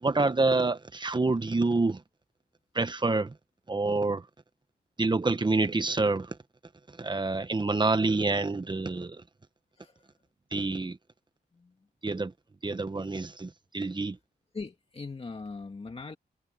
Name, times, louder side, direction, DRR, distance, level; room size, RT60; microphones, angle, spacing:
voice 1, 0.0-2.0 2.7-3.3 3.7-4.2 5.0-6.4 7.0-9.2 10.5-11.0 12.0-12.3 12.6-14.2, right 3 dB, 25° right, 1.3 m, -27 dB
voice 2, 14.5-16.2, left 4 dB, 35° left, 2.1 m, -40 dB
wide cardioid pair, 115°, 18 cm